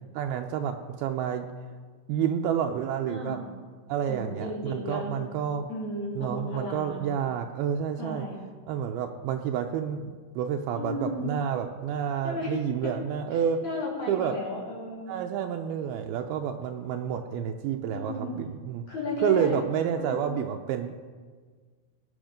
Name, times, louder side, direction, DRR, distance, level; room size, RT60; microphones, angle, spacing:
voice 1, 0.1-1.5 2.1-3.4 3.9-5.7 6.2-8.3 8.7-13.6 14.1-14.3 15.1-18.8 19.2-21.0, right 8 dB, 80° right, 4 dB, 2.6 m, -29 dB
voice 2, 3.1-3.4 4.1-5.1 5.7-7.1 8.0-8.4 10.7-11.3 12.2-12.9 13.6-15.1 17.9-18.3 18.9-19.6 19.9-20.3, left 2 dB, 50° left, -5 dB, 4.6 m, -34 dB
20.5 x 8.8 x 5.1 m, 1.5 s
omnidirectional pair, 4.4 m